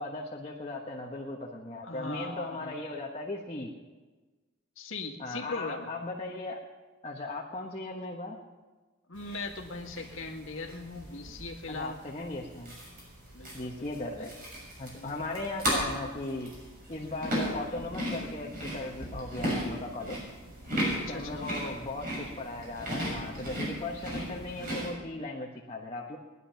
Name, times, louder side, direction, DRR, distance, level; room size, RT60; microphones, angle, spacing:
voice 1, 0.0-3.7 5.2-6.6 7.0-8.4 11.7-12.8 13.5-14.3 14.8-16.5 16.9-20.2 21.1-26.2, left 2 dB, 30° left, -2 dB, 1.2 m, -37 dB
voice 2, 1.8-2.8 4.8-5.9 9.1-12.0 13.3-13.9 14.2-14.3 14.9-15.2 20.9-21.8, left 3 dB, 70° left, 2 dB, 1.9 m, -40 dB
sound 1, 9.1-24.9, equal, 45° right, 6.8 m, -36 dB
20.0 x 11.0 x 5.8 m, 1.3 s
head